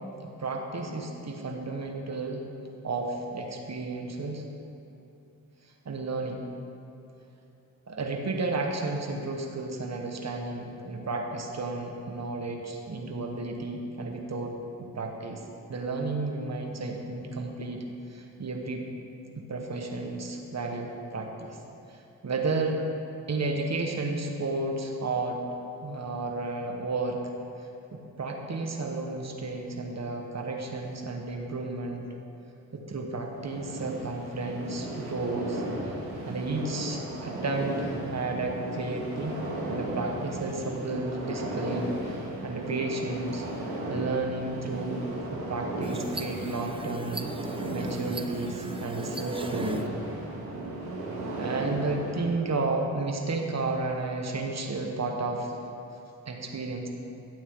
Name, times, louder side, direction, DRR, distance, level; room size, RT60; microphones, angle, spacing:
voice 1, 0.2-2.4 2.8-4.4 5.8-6.5 7.9-15.4 15.7-17.8 18.1-18.8 19.4-21.6 21.9-22.8 23.3-25.4 25.8-27.2 27.9-32.1 32.7-35.6 36.3-39.4 39.7-43.4 43.9-45.0 45.3-47.3 47.7-49.8 51.3-55.5 56.2-56.9, right 3 dB, 45° right, 2 dB, 1.5 m, -32 dB
sound 1, 33.4-52.3, right 1 dB, 75° right, 2.2 m, -35 dB
sound 2, 45.8-49.9, right 2 dB, 15° right, 0.7 m, -41 dB
12.0 x 8.7 x 3.8 m, 2.9 s
cardioid pair, 50°, 38 cm